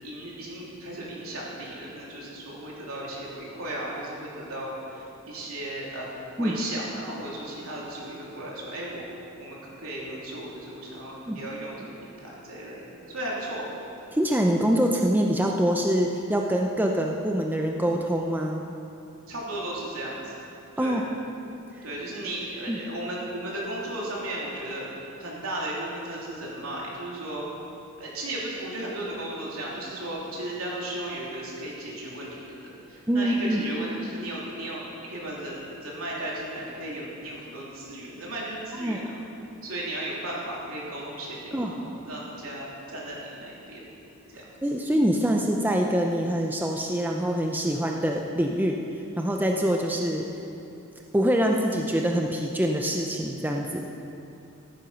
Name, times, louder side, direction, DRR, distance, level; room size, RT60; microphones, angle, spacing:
voice 1, 0.0-6.1 6.4-9.0 9.4-13.6 19.3-20.5 20.8-21.0 21.8-27.5 28.0-39.2 39.6-43.8 44.3-44.5, right 1 dB, 70° right, -5 dB, 3.4 m, -35 dB
voice 2, 14.1-18.6 20.8-21.0 22.7-22.8 33.1-33.6 38.8-39.0 41.5-42.0 44.6-48.9 49.2-50.3 51.1-53.9, equal, 10° right, 1 dB, 0.6 m, -25 dB
15.0 x 9.3 x 5.7 m, 2.8 s
head